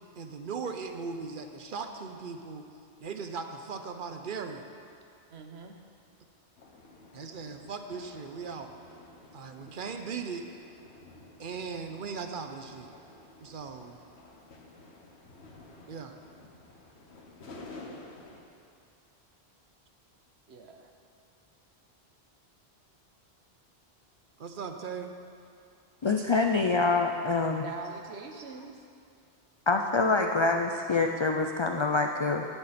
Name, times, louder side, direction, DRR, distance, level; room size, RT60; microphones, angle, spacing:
voice 1, 0.2-2.6 3.0-4.6 7.1-8.7 9.3-10.4 11.4-12.9 13.4-14.0 15.9-16.2 24.4-25.1, right 5 dB, 55° right, 6 dB, 0.8 m, -38 dB
voice 2, 5.3-5.8 20.5-20.9 27.6-28.8, right 4 dB, 75° right, 4 dB, 1.2 m, -43 dB
sound 1, 6.6-18.4, left 2 dB, 80° left, 1.5 m, -51 dB
voice 3, 26.0-27.6 29.7-32.5, left 3 dB, 50° left, 3 dB, 0.3 m, -26 dB
17.0 x 7.1 x 4.2 m, 2.4 s
omnidirectional pair, 1.1 m